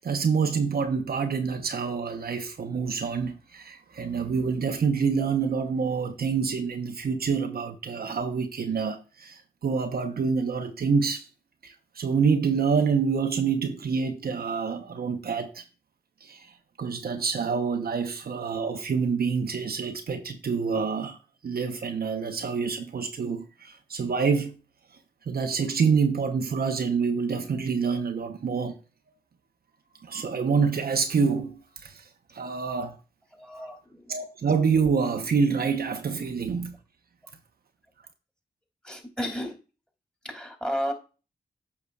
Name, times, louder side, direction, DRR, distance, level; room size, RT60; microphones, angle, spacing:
voice 1, 0.0-11.3 11.6-15.6 16.2-24.5 25.2-28.8 30.0-33.0 34.1-36.8, right 5 dB, 60° right, 0.9 m, -27 dB
voice 2, 33.3-34.1 38.8-39.6 40.2-40.9, equal, 5° left, 2.6 m, -33 dB
8.4 x 5.9 x 2.4 m
supercardioid pair, 40°, 17 cm